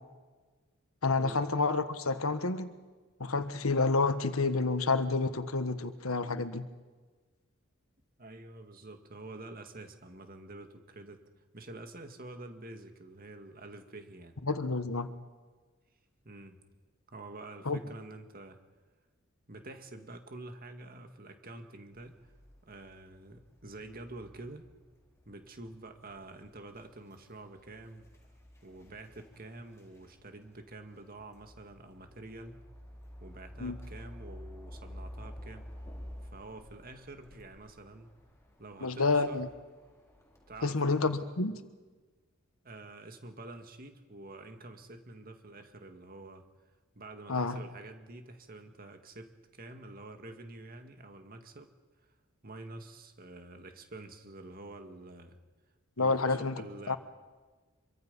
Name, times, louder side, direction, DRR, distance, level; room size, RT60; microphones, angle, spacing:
voice 1, 1.0-2.7 3.2-6.7 14.4-15.1 17.6-17.8 33.6-33.8 38.8-39.5 40.6-41.6 47.3-47.6 56.0-57.0, left 3 dB, 85° left, 11 dB, 1.4 m, -29 dB
voice 2, 8.2-11.2 11.5-14.4 16.2-16.6 17.1-18.6 19.5-22.3 22.6-24.7 25.3-28.1 28.6-32.6 33.2-35.7 36.2-38.1 38.6-39.4 40.5-41.1 42.6-46.5 47.0-51.7 52.4-55.4 56.0-57.0, right 2 dB, 45° right, 6 dB, 2.0 m, -48 dB
sound 1, 21.9-40.7, equal, 15° left, 4.0 m, -51 dB
25.5 x 23.5 x 5.5 m, 1.3 s
head